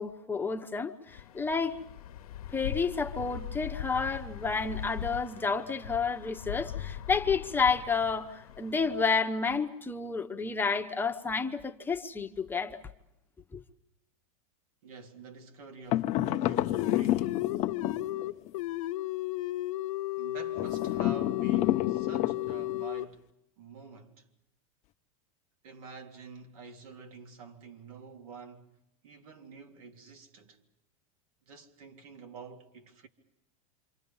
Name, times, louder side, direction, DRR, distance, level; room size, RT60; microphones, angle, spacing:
voice 1, 0.0-1.8 2.5-12.8 13.5-13.6, left 5 dB, 10° left, 1.0 m, -30 dB
sound 1, 1.1-9.0, left 11 dB, 85° left, 1.1 m, -41 dB
voice 2, 14.8-17.6 20.1-23.3 23.6-24.3 25.6-28.7 29.0-30.6 31.5-33.1, right 4 dB, 75° right, 3.4 m, -48 dB
sound 2, 15.9-18.5 20.5-22.8, left 15 dB, 40° left, 0.9 m, -29 dB
sound 3, 16.5-23.0, left 17 dB, 65° left, 1.2 m, -34 dB
28.0 x 26.0 x 5.6 m
supercardioid pair, 140°, 18 cm